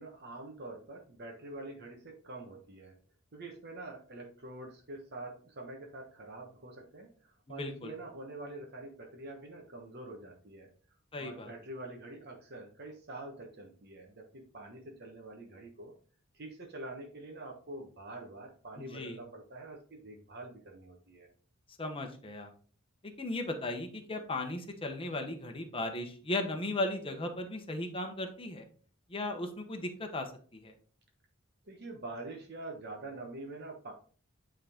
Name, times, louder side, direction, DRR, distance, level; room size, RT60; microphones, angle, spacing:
voice 1, 0.0-3.0 3.3-10.7 11.2-15.9 16.3-21.3 31.6-33.9, right 2 dB, 50° right, 1 dB, 1.2 m, -46 dB
voice 2, 7.5-7.9 11.1-11.5 18.8-19.2 21.8-22.5 23.0-28.7 29.1-30.7, left 2 dB, 25° left, 4 dB, 1.0 m, -36 dB
9.5 x 3.8 x 3.6 m, 0.42 s
head